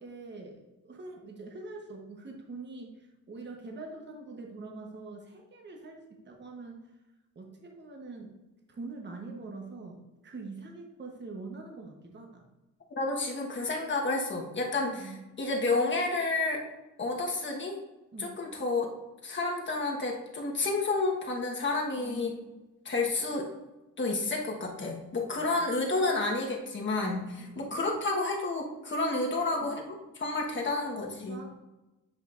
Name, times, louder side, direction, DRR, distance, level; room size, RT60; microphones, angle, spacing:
voice 1, 0.0-6.9 7.3-8.3 8.7-12.4 14.8-15.2 18.1-18.3 22.0-22.6 25.4-25.7 27.4-27.8 29.3-29.7 31.3-31.5, right 3 dB, 35° right, 2 dB, 1.1 m, -44 dB
voice 2, 13.0-16.6 17.0-17.8 18.2-18.9 19.2-22.3 22.8-23.5 24.0-29.8 30.2-31.4, left 3 dB, 40° left, 0 dB, 1.4 m, -30 dB
9.1 x 5.1 x 2.6 m, 1.1 s
cardioid pair, 115°, 30 cm